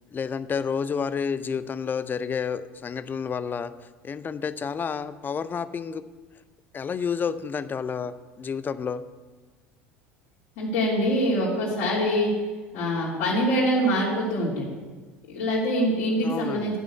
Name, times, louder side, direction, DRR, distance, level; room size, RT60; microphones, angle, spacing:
voice 1, 0.1-3.7 4.0-6.1 6.7-9.0 16.2-16.7, left 6 dB, 25° left, 14 dB, 0.6 m, -30 dB
voice 2, 10.6-12.3 12.7-14.7 15.3-16.8, equal, 55° left, -8 dB, 3.0 m, -24 dB
12.0 x 6.3 x 8.3 m, 1.3 s
figure-of-eight pair, 70°, 8 cm